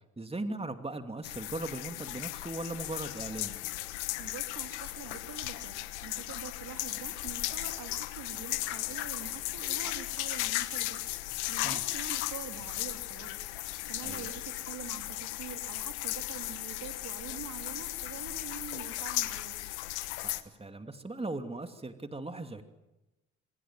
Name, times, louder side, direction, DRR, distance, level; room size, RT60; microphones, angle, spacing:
voice 1, 0.2-3.5 11.6-11.8 14.0-14.3 20.2-22.6, right 2 dB, 15° right, 7 dB, 2.7 m, -38 dB
sound 1, 1.2-20.4, left 17 dB, 85° left, 1.2 m, -36 dB
voice 2, 4.2-11.0 11.5-13.4 13.9-19.6, right 8 dB, 65° right, 6 dB, 3.2 m, -45 dB
27.0 x 23.0 x 7.6 m, 0.99 s
hypercardioid pair, 45°, 33 cm